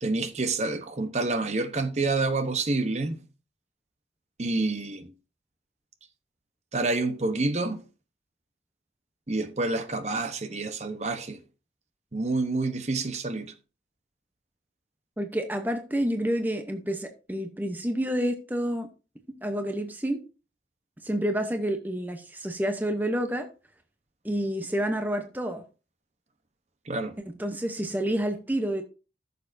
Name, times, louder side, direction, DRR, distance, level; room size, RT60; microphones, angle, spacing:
voice 1, 0.0-3.2 4.4-5.1 6.7-7.8 9.3-11.4 12.1-13.5 26.9-27.2, right 3 dB, 40° right, 0.9 m, -28 dB
voice 2, 15.2-18.9 19.4-20.2 21.0-23.5 24.2-25.6 27.3-28.8, equal, 10° right, 0.8 m, -29 dB
14.0 x 6.8 x 2.6 m
head